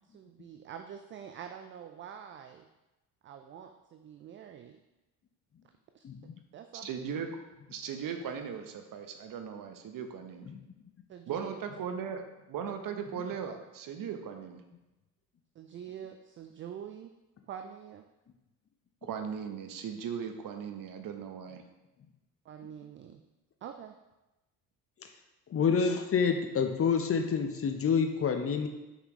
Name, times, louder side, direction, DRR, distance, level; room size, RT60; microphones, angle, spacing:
voice 1, 0.1-2.7 3.2-4.8 5.9-6.0 6.5-6.8 11.1-11.6 15.6-17.1 17.5-18.0 22.5-23.2 23.6-23.9, right 8 dB, 30° right, 6 dB, 0.4 m, -45 dB
voice 2, 6.0-6.3 10.5-10.6 25.0-25.1 25.5-28.7, left 6 dB, 30° left, 6 dB, 0.7 m, -28 dB
voice 3, 6.8-7.3 7.7-10.5 11.3-14.6 19.0-21.6, right 7 dB, 45° right, 6 dB, 0.9 m, -38 dB
6.0 x 5.5 x 3.1 m, 1.0 s
hypercardioid pair, 60°, 46 cm